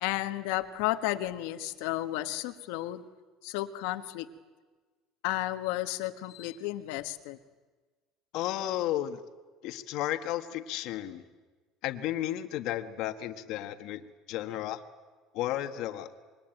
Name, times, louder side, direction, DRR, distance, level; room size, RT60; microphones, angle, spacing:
voice 1, 0.0-3.0 3.4-4.3 5.2-7.4, left 16 dB, 85° left, 10 dB, 1.4 m, -32 dB
voice 2, 8.3-9.2 9.6-11.2 11.8-14.8 15.3-16.1, left 13 dB, 65° left, 9 dB, 1.4 m, -33 dB
26.0 x 22.5 x 9.1 m, 1.4 s
cardioid pair, 145°, 0 cm